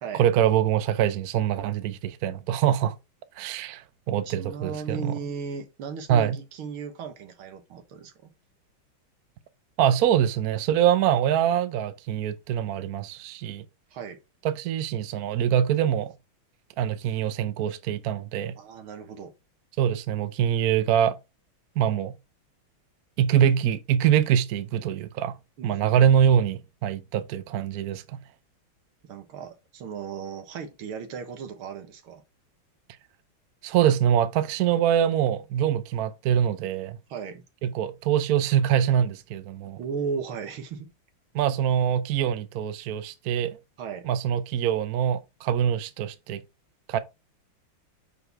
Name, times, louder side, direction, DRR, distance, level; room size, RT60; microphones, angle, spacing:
voice 1, 0.1-2.9 3.4-5.1 6.1-6.4 9.8-13.7 14.4-16.1 16.8-18.6 19.8-21.2 21.8-22.1 23.2-25.4 25.6-28.2 33.6-37.0 37.6-39.8 41.3-43.6 44.0-46.4 46.9-47.0, right 9 dB, 65° right, 0.9 m, -24 dB
voice 2, 4.2-8.3 13.9-14.2 18.6-19.3 25.6-26.5 29.0-32.2 37.1-37.4 39.8-40.9 43.8-44.1, right 6 dB, 90° right, 2.1 m, -36 dB
6.2 x 5.6 x 3.4 m
omnidirectional pair, 2.3 m